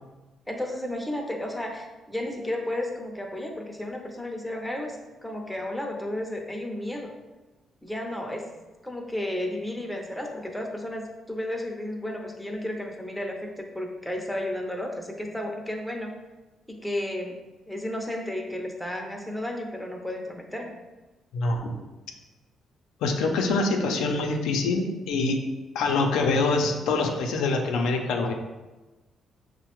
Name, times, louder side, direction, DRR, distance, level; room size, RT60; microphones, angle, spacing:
voice 1, 0.5-7.1 7.8-8.5 8.8-16.1 16.7-20.8, left 1 dB, 5° left, 1 dB, 0.6 m, -33 dB
voice 2, 21.3-21.8 23.0-25.4 25.7-28.3, left 3 dB, 90° left, 2 dB, 0.4 m, -25 dB
5.4 x 2.1 x 2.9 m, 1.2 s
cardioid pair, 90°, 0 cm